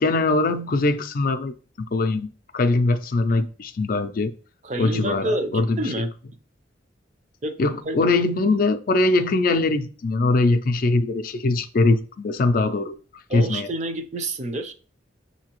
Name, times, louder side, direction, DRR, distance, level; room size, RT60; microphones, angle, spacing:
voice 1, 0.0-1.5 1.9-2.3 2.5-4.3 4.8-5.8 7.6-12.9 13.3-13.7, left 2 dB, 50° left, 0.4 m, -21 dB
voice 2, 4.6-6.1 7.4-7.6 7.8-8.0 13.3-14.7, right 1 dB, 40° right, 0.5 m, -28 dB
6.6 x 2.8 x 2.9 m
head